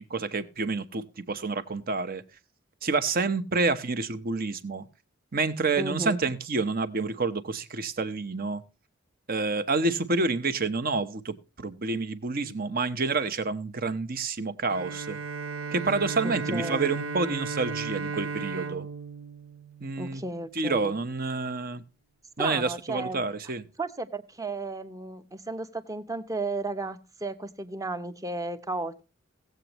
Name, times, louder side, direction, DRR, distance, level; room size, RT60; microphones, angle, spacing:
voice 1, 0.0-2.2 2.8-4.8 5.3-8.6 9.3-15.2 15.7-18.9 19.8-20.2 20.6-21.8 22.4-23.6, right 3 dB, 45° right, 0.9 m, -28 dB
voice 2, 5.8-6.2 16.2-17.0 20.0-20.9 22.4-23.2 23.8-29.0, right 2 dB, 15° right, 0.8 m, -34 dB
Bowed string instrument, 14.7-20.4, right 4 dB, 80° right, 0.6 m, -35 dB
17.5 x 8.0 x 3.0 m
head